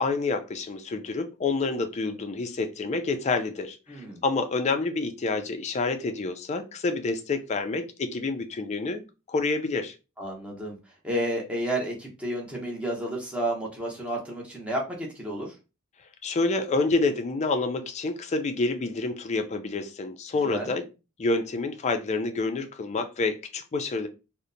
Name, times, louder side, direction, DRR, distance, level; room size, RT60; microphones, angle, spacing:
voice 1, 0.0-9.9 16.2-20.9 21.2-24.1, left 3 dB, 30° left, 7 dB, 0.3 m, -28 dB
voice 2, 3.9-4.2 10.2-10.8 11.0-15.5 20.4-20.7, right 1 dB, 5° right, -2 dB, 0.7 m, -31 dB
2.7 x 2.1 x 2.5 m, 0.29 s
head